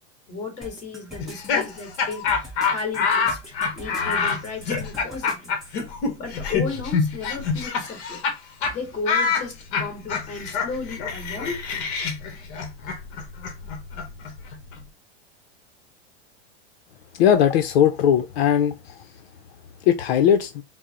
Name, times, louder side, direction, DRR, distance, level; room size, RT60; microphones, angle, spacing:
voice 1, 0.3-5.5 6.2-8.2 8.7-11.6, left 4 dB, 20° left, 1.7 m, -34 dB
sound 1, 0.6-5.8, right 1 dB, ahead, 0.8 m, -42 dB
Laughter, 1.2-8.3 8.6-8.7 9.0-14.8, left 5 dB, 45° left, 1.0 m, -26 dB
voice 2, 17.2-18.8 19.9-20.6, left 9 dB, 70° left, 0.6 m, -18 dB
4.3 x 2.0 x 3.6 m
supercardioid pair, 155°, 32 cm